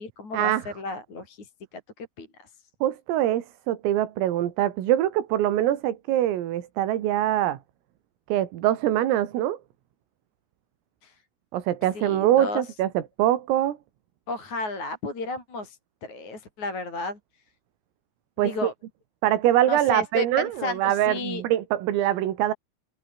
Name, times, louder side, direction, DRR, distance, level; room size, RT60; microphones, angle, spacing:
voice 1, 0.0-1.4 2.2-2.3 11.0-11.1 11.9-12.6 14.3-17.2 18.4-18.7 19.7-21.4, left 3 dB, 35° left, 7.7 m, -32 dB
voice 2, 2.8-7.6 8.3-9.6 11.5-13.8 18.4-18.7 19.2-22.5, right 12 dB, 80° right, 4.8 m, -23 dB
omnidirectional pair, 6.0 m